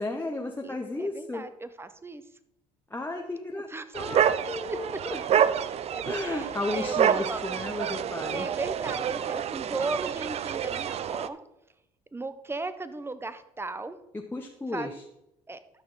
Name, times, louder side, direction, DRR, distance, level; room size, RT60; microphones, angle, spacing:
voice 1, 0.0-1.4 2.9-3.7 3.9-5.4 6.1-8.5 14.1-14.9, left 2 dB, 15° left, 2 dB, 1.0 m, -34 dB
voice 2, 0.6-2.2 3.5-4.2 4.7-4.8 5.9-7.4 8.3-11.4 12.1-14.0 14.7-14.9 15.5-15.6, right 3 dB, 15° right, 12 dB, 1.0 m, -36 dB
sound 1, 3.9-11.3, right 9 dB, 45° right, 0.5 m, -28 dB
12.0 x 6.2 x 4.0 m, 0.84 s
hypercardioid pair, 60°, 14 cm